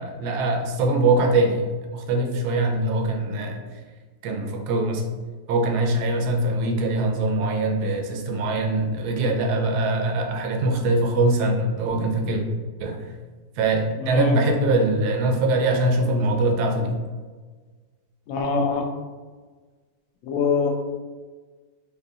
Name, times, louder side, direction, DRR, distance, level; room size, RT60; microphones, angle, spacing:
voice 1, 0.0-1.6 1.9-3.6 4.2-5.0 5.5-12.4 12.8-13.0 13.6-17.0, right 2 dB, 70° right, 3 dB, 1.0 m, -22 dB
voice 2, 14.0-14.4 18.3-18.9 20.2-20.7, left 5 dB, 70° left, 2 dB, 0.8 m, -23 dB
4.4 x 2.9 x 2.6 m, 1.4 s
omnidirectional pair, 2.0 m